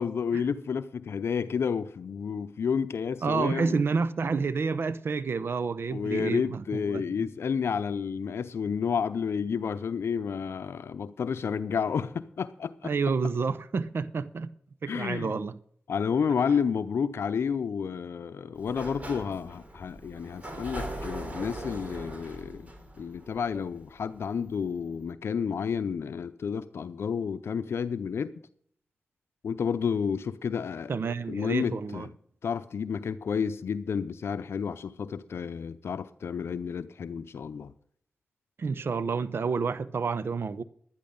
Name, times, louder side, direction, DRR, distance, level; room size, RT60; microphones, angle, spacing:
voice 1, 0.0-3.8 5.9-12.9 14.9-15.3 15.9-22.7 23.0-28.3 29.4-30.9 31.3-32.1 32.4-37.7, left 6 dB, 85° left, 0.5 m, -30 dB
voice 2, 3.2-7.0 12.8-14.5 14.8-15.5 30.9-32.1 38.6-40.6, right 5 dB, 70° right, 0.7 m, -29 dB
Sliding door, 18.6-24.2, right 1 dB, 35° right, 3.3 m, -40 dB
12.0 x 10.5 x 5.3 m
cardioid pair, 50°, 4 cm